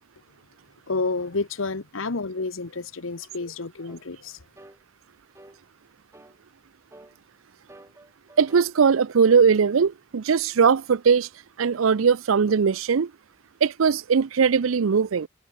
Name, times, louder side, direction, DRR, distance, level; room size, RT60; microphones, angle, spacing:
voice 1, 0.9-4.4, left 3 dB, 80° left, 1.2 m, -30 dB
sound 1, 3.9-4.0 4.6-4.8 5.3-5.6 6.1-6.4 6.9-7.2 7.7-8.7 9.2-9.5, right 1 dB, 15° right, 2.8 m, -49 dB
voice 2, 8.4-11.3 11.6-13.1 13.6-15.3, right 6 dB, 85° right, 0.5 m, -20 dB
head